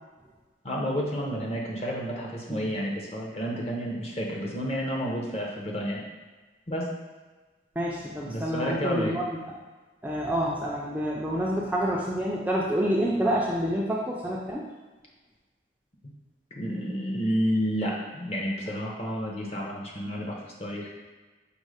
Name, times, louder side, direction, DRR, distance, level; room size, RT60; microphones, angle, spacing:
voice 1, 0.6-6.0 6.7-6.9 8.2-9.2 16.5-20.9, equal, 35° left, -2 dB, 0.7 m, -30 dB
voice 2, 7.8-9.4 10.0-14.6, equal, 10° right, -4 dB, 0.3 m, -28 dB
5.2 x 2.0 x 4.7 m, 1.3 s
head